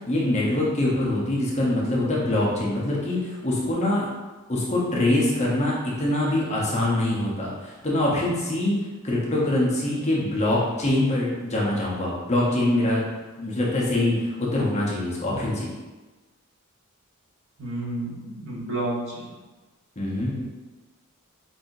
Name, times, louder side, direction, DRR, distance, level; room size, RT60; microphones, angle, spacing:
voice 1, 0.1-4.1 4.5-8.7 9.0-13.0 13.4-15.7 20.0-20.3, left 1 dB, 30° left, -5 dB, 0.8 m, -24 dB
voice 2, 17.6-19.3 20.3-20.4, right 1 dB, 60° right, -6 dB, 1.2 m, -31 dB
5.4 x 2.7 x 2.6 m, 1.2 s
head